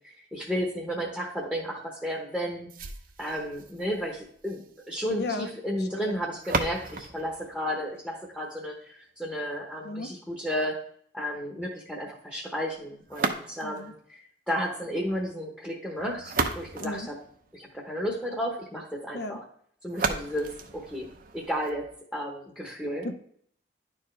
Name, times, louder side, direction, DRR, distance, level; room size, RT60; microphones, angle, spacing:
voice 1, 0.0-2.7 3.2-10.8 11.1-17.2 17.5-19.4 19.8-21.1 21.3-23.1, equal, 5° left, -2 dB, 1.0 m, -33 dB
sound 1, 2.7-8.7 13.1-13.9 15.9-17.9 19.9-21.9, right 4 dB, 50° right, 0.7 m, -35 dB
voice 2, 5.2-5.5 5.8-6.2 9.8-10.1 13.6-13.9 16.8-17.1 19.1-19.4 23.0-23.1, left 2 dB, 60° left, 9 dB, 0.7 m, -35 dB
10.5 x 4.6 x 3.2 m, 0.63 s
head